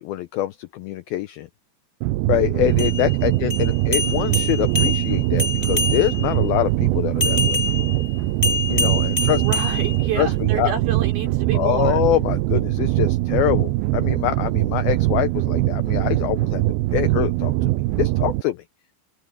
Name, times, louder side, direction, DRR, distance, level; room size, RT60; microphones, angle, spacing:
voice 1, 0.0-1.5 2.3-7.6 8.7-9.4 10.2-10.3 10.6-10.7 11.5-16.6 16.9-17.7 18.0-18.6, left 14 dB, 80° left, 2.2 m, -24 dB
sound 1, 2.0-18.4, right 18 dB, 80° right, 2.2 m, -22 dB
sound 2, 2.7-6.4 7.2-10.4, left 4 dB, 10° left, 1.9 m, -26 dB
voice 2, 4.0-4.9 9.3-12.0, right 7 dB, 60° right, 6.9 m, -30 dB
omnidirectional pair, 5.0 m